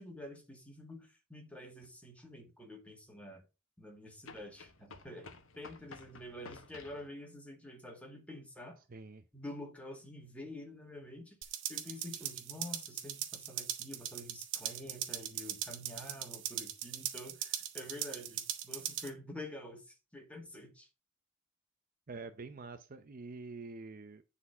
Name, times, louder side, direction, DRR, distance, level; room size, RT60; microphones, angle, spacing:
voice 1, 0.0-3.4 3.8-5.3 5.6-8.8 9.3-11.4 11.7-20.9, left 1 dB, 5° left, 2.1 m, -48 dB
sound 1, 1.8-1.9 4.2-7.1, left 4 dB, 70° left, 1.2 m, -53 dB
voice 2, 8.9-9.2 22.1-24.2, right 3 dB, 40° right, 0.6 m, -46 dB
sound 2, 11.4-19.1, right 10 dB, 60° right, 1.3 m, -40 dB
10.0 x 4.2 x 5.4 m
head